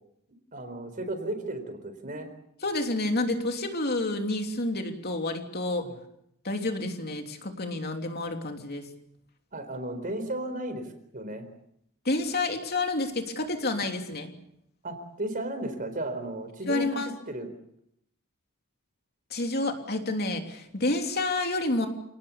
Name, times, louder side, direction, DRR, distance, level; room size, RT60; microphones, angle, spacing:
voice 1, 0.5-2.3 5.8-5.9 9.5-10.9 11.1-11.5 14.8-16.9 17.3-17.5, right 1 dB, 40° right, 9 dB, 4.2 m, -34 dB
voice 2, 2.6-5.9 6.4-8.9 12.0-14.3 16.7-17.1 19.3-21.9, left 2 dB, 45° left, 4 dB, 3.1 m, -29 dB
28.0 x 19.0 x 7.2 m, 0.75 s
head